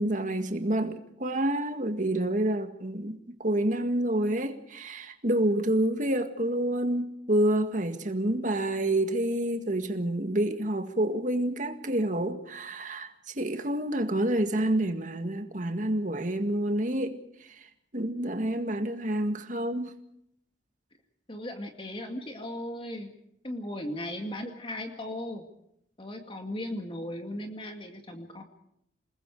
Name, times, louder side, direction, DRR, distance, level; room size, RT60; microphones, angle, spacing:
voice 1, 0.0-17.7 17.9-19.9, right 1 dB, 50° right, 2.0 m, -28 dB
voice 2, 21.3-23.1 23.4-25.4 26.0-28.4, left 1 dB, 30° left, 2.1 m, -37 dB
28.0 x 20.5 x 4.9 m
head